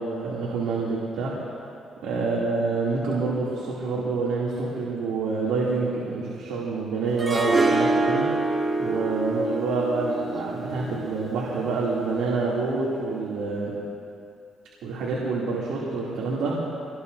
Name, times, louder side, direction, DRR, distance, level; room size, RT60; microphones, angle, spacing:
voice 1, 0.0-1.3 2.0-8.2 8.8-13.7 14.8-16.5, right 3 dB, 80° right, -6 dB, 2.8 m, -27 dB
Harp, 7.2-12.3, right 3 dB, 30° right, 1.9 m, -26 dB
25.0 x 19.5 x 2.7 m, 2.5 s
cardioid pair, 90°, 0 cm